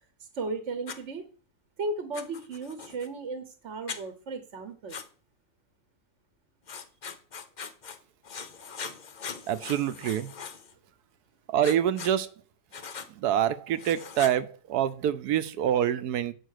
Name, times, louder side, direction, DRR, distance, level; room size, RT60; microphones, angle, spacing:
voice 1, 0.2-1.3 1.8-5.0, right 3 dB, 50° right, 1.0 m, -35 dB
Writing, 0.9-1.0 2.1-3.1 3.9-4.0 4.9-5.1 6.7-8.0 8.2-10.7 11.6-12.1 12.7-13.1 13.7-14.3, left 6 dB, 55° left, 0.5 m, -41 dB
voice 2, 9.5-10.3 11.5-12.3 13.2-16.3, right 10 dB, 75° right, 1.1 m, -26 dB
8.0 x 4.8 x 6.5 m
omnidirectional pair, 1.8 m